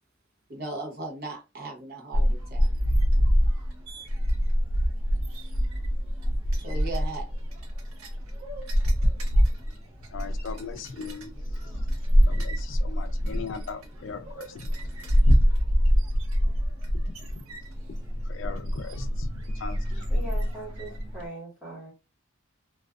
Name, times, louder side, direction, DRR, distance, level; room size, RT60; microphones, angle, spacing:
voice 1, 0.5-2.7 6.6-7.3, right 2 dB, 45° right, 0.7 m, -37 dB
sound 1, 2.1-21.2, equal, 85° right, 0.6 m, -25 dB
voice 2, 10.1-11.3 11.7-11.8 12.1-14.7 16.9-17.4 18.2-20.1, left 5 dB, 60° left, 0.4 m, -39 dB
voice 3, 20.1-21.9, right 2 dB, 10° right, 1.1 m, -40 dB
2.5 x 2.3 x 2.3 m
head